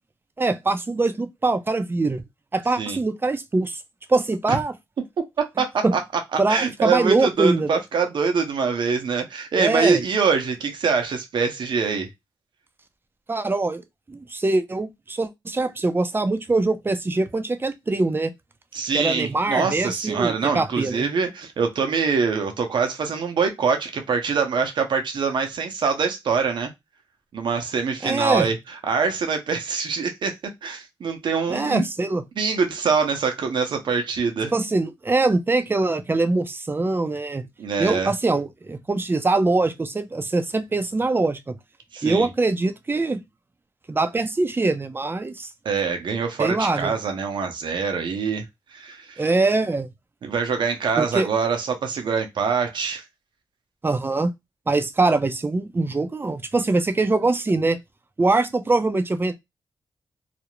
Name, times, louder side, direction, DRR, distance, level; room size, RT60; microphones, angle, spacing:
voice 1, 0.4-2.2 2.5-3.8 4.1-4.7 5.8-5.9 6.4-7.7 9.6-10.0 13.3-13.8 14.1-18.3 18.9-21.1 28.0-28.5 31.5-32.2 34.5-37.4 37.8-41.6 42.0-43.2 43.9-45.5 46.4-46.9 49.2-49.9 51.0-51.3 53.8-54.3 54.7-57.8 58.2-59.4, right 3 dB, 25° right, 0.5 m, -23 dB
voice 2, 5.6-6.0 6.3-12.1 18.7-26.7 27.3-28.6 28.8-30.3 30.6-31.8 32.4-34.5 37.6-38.1 41.9-42.3 45.6-48.4 48.7-49.3 50.2-53.0, right 5 dB, 70° right, 0.7 m, -24 dB
2.4 x 2.0 x 3.0 m
cardioid pair, 60°, 8 cm